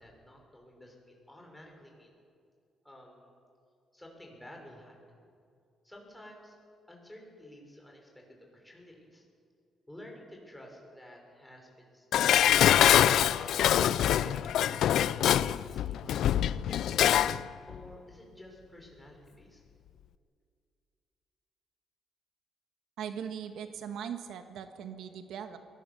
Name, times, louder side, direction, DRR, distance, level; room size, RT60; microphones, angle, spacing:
voice 1, 0.0-2.2 2.8-3.3 3.9-5.2 5.8-6.6 6.9-9.2 9.9-12.1 14.1-17.0 17.7-19.6, left 1 dB, 5° left, 0 dB, 5.7 m, -52 dB
Dishes pots and pans, 12.1-17.4 17.7-17.8, left 11 dB, 80° left, 0.5 m, -24 dB
voice 2, 23.0-25.6, right 8 dB, 80° right, 8 dB, 1.5 m, -39 dB
23.0 x 18.5 x 7.0 m, 2.3 s
cardioid pair, 105°, 0 cm